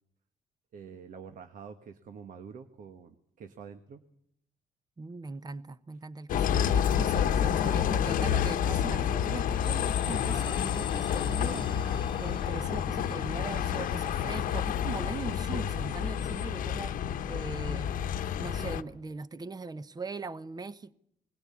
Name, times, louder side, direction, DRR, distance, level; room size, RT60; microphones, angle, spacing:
voice 1, 0.7-4.1 14.1-14.3, right 6 dB, 70° right, 1.4 m, -47 dB
voice 2, 5.0-11.7 12.2-17.9 18.4-20.9, right 4 dB, 30° right, 1.0 m, -40 dB
Bus, 6.3-18.8, left 9 dB, 80° left, 1.0 m, -29 dB
sound 1, 9.2-17.0, left 5 dB, 35° left, 1.2 m, -47 dB
21.0 x 16.5 x 8.6 m
cardioid pair, 85°, 14 cm